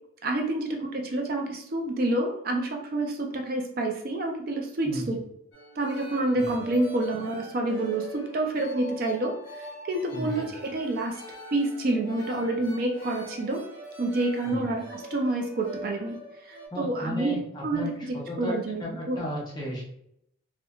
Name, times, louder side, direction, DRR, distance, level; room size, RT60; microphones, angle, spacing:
voice 1, 0.2-5.2 5.8-11.2 11.5-13.6 14.0-17.9 18.4-19.2, right 2 dB, 45° right, 2 dB, 0.4 m, -28 dB
sound 1, 5.5-16.7, equal, 70° left, 0.9 m, -43 dB
voice 2, 10.1-10.4 14.4-14.7 16.7-19.8, equal, 20° left, -3 dB, 0.6 m, -35 dB
2.9 x 2.1 x 2.3 m, 0.75 s
head